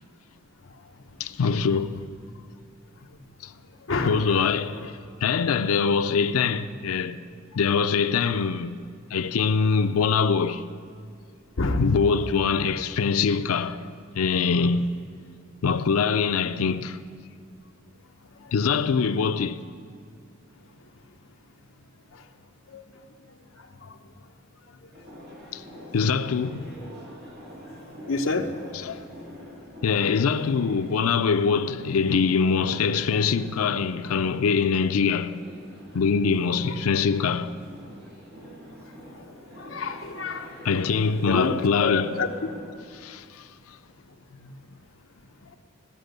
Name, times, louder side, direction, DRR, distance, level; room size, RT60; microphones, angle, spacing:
voice 1, 1.2-2.0 3.4-3.5 4.0-7.2 7.5-8.8 9.1-10.7 11.8-13.8 14.1-14.9 15.6-17.0 18.5-19.6 25.5-25.6 25.9-26.7 28.7-29.0 29.8-35.4 35.9-37.5 40.6-42.2 43.0-43.4, left 5 dB, 90° left, 0.5 m, -23 dB
voice 2, 3.9-4.9 6.0-6.2 11.6-11.9 18.7-18.8 22.7-22.8 28.1-28.9 36.6-36.8 39.6-40.5 41.3-42.3, left 3 dB, 65° left, 0.8 m, -28 dB
sound 1, 24.9-42.7, equal, 50° right, 2.5 m, -45 dB
17.0 x 6.1 x 6.6 m
head